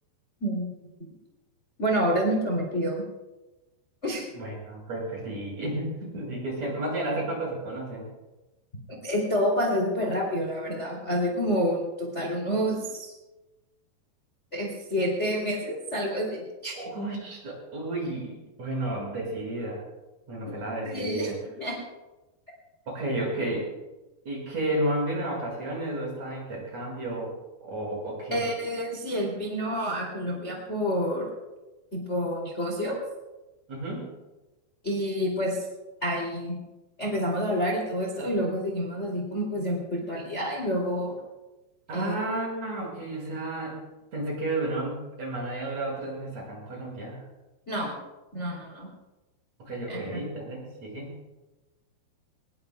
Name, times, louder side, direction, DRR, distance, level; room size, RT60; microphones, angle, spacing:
voice 1, 1.8-3.0 4.0-4.2 8.9-13.1 14.5-16.8 20.4-20.5 20.8-21.3 21.6-21.8 28.3-31.3 31.9-33.0 34.8-35.6 36.0-36.5 37.0-41.2 41.9-42.2 47.7-48.0 48.3-48.9 49.9-50.0, equal, 20° left, -1 dB, 2.2 m, -28 dB
voice 2, 4.3-8.1 16.7-19.8 20.3-21.4 22.9-23.7 24.3-27.3 27.6-28.5 33.7-34.1 41.9-43.8 44.1-47.2 49.6-51.2, right 1 dB, 40° right, -3 dB, 7.0 m, -32 dB
23.5 x 20.0 x 2.3 m, 1.1 s
omnidirectional pair, 5.0 m